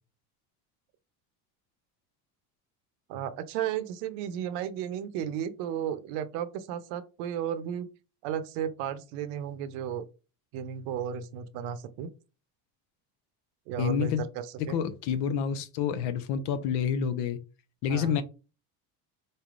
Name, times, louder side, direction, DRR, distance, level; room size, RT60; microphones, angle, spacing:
voice 1, 3.1-7.9 8.2-10.0 10.5-12.1 13.7-14.8 17.9-18.2, right 9 dB, 75° right, 0.7 m, -34 dB
voice 2, 13.8-14.2 14.6-17.4 17.8-18.2, left 8 dB, 70° left, 0.7 m, -28 dB
4.1 x 3.3 x 2.4 m
cardioid pair, 125°, 42 cm